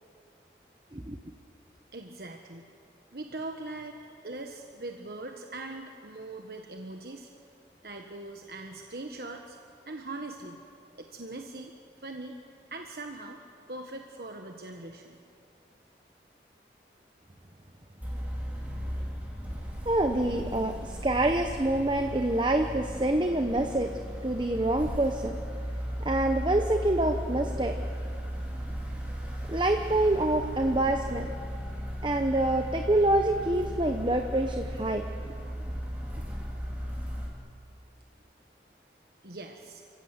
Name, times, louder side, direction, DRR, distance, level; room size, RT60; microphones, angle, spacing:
voice 1, 1.9-2.7 3.1-7.3 7.8-9.6 9.9-10.6 10.9-11.7 12.0-12.4 12.7-13.4 13.7-15.2 39.2-39.8, right 2 dB, 60° right, 3 dB, 1.4 m, -41 dB
sound 1, 18.0-37.3, equal, 10° right, 3.6 m, -36 dB
voice 2, 19.8-23.9 24.2-25.4 26.0-27.7 29.5-31.3 32.0-35.0, right 1 dB, 25° right, 5 dB, 0.9 m, -26 dB
29.5 x 15.5 x 8.1 m, 2.4 s
head